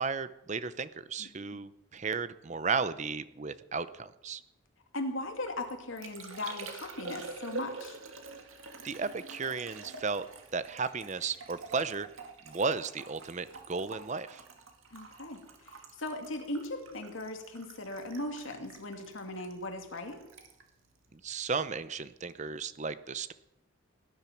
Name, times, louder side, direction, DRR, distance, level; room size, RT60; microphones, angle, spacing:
voice 1, 0.0-4.4 8.8-10.3 10.5-12.1 12.4-14.4 21.1-23.3, right 5 dB, 35° right, 14 dB, 0.7 m, -34 dB
voice 2, 1.2-1.6 4.9-8.0 14.9-20.2, left 1 dB, 70° left, 4 dB, 2.3 m, -38 dB
Liquid, 5.2-21.9 22.1-22.6, right 3 dB, 80° right, 1.9 m, -47 dB
18.5 x 10.5 x 5.9 m, 0.87 s
head